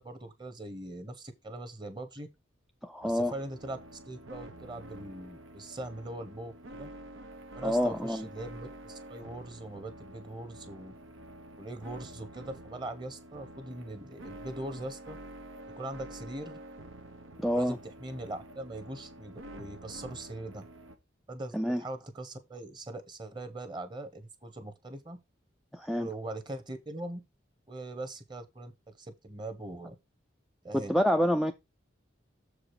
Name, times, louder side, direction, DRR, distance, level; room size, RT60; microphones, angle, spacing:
voice 1, 0.0-2.3 3.0-6.9 7.5-10.9 11.6-15.2 15.7-16.6 17.5-20.6 21.3-25.2 26.0-27.2 27.7-29.9 30.6-31.0, right 1 dB, 20° right, 1.1 m, -41 dB
voice 2, 2.8-3.3 7.6-8.3 17.4-17.8 21.5-21.8 25.7-26.1 30.7-31.5, equal, ahead, 0.3 m, -27 dB
sound 1, 3.0-21.0, right 1 dB, 85° right, 1.1 m, -48 dB
7.2 x 4.9 x 4.7 m
head